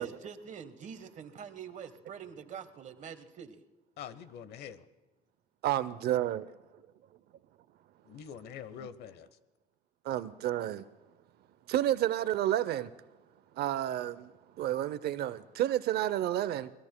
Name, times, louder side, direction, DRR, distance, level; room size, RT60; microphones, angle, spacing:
voice 1, 0.0-3.6, right 7 dB, 45° right, 1.2 m, -45 dB
voice 2, 4.0-4.9 8.1-9.3, left 8 dB, 75° left, 0.9 m, -45 dB
voice 3, 5.6-6.5 8.8-8.9 10.0-10.8 11.7-12.9 13.6-14.3 14.6-16.7, right 12 dB, 70° right, 0.6 m, -30 dB
25.5 x 19.5 x 2.2 m
cardioid pair, 110°, 17 cm